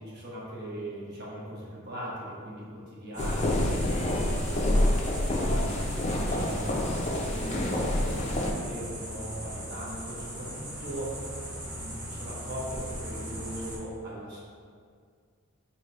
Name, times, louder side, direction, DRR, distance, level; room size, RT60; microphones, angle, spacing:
voice 1, 0.0-3.8 5.7-11.2 11.7-14.4, right 1 dB, 50° right, -6 dB, 1.0 m, -40 dB
sound 1, 3.1-13.8, equal, 80° right, 1.0 m, -39 dB
sound 2, 3.2-8.5, left 1 dB, 30° left, 0.4 m, -27 dB
4.4 x 3.2 x 2.6 m, 2.1 s
head